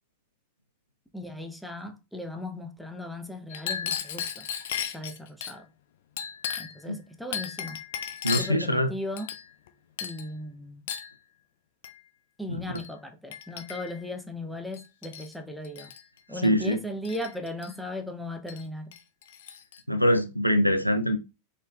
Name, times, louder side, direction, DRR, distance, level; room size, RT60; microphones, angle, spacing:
voice 1, 1.1-4.5 4.9-5.7 6.6-7.8 8.4-9.3 10.0-10.8 12.4-15.9 16.3-18.9, left 1 dB, ahead, 0.7 m, -37 dB
Chink clink, 3.5-5.6 6.2-6.8 7.3-8.6 9.2-9.7 10.0-10.3 10.9-11.1 11.8-12.0 12.8-12.9 13.3-14.0 14.7-15.3 15.6-16.0 17.0-17.7 18.5-18.6 18.9-19.8, left 8 dB, 55° left, 0.5 m, -35 dB
voice 2, 8.2-8.9 12.5-12.6 16.4-16.8 19.9-21.2, equal, 90° right, 0.5 m, -23 dB
4.2 x 3.8 x 2.3 m
figure-of-eight pair, 90°, 0 cm